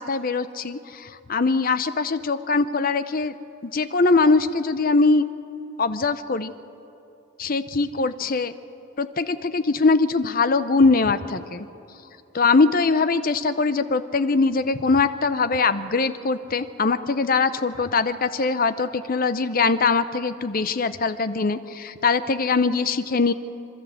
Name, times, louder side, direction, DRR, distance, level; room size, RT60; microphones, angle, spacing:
voice 1, 0.0-3.3 3.6-5.2 5.8-6.5 7.4-8.6 9.0-11.7 12.3-23.3, left 4 dB, 45° left, 12 dB, 0.7 m, -22 dB
26.0 x 13.0 x 7.8 m, 2.9 s
head